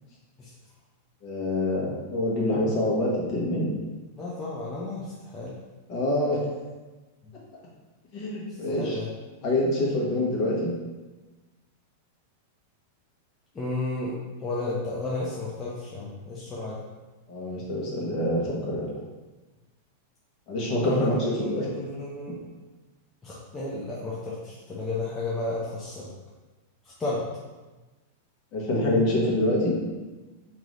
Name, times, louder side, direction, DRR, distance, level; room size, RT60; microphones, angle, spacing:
voice 1, 1.2-3.7 5.9-6.4 8.1-9.0 9.4-10.7 17.3-18.9 20.5-21.7 28.5-29.7, left 1 dB, 40° left, -4 dB, 1.3 m, -26 dB
voice 2, 4.2-5.5 8.7-9.1 13.5-16.8 20.8-22.3 23.2-26.1 27.0-27.2, left 2 dB, 15° left, -7 dB, 0.7 m, -32 dB
3.1 x 3.0 x 3.9 m, 1.2 s
supercardioid pair, 135°, 0 cm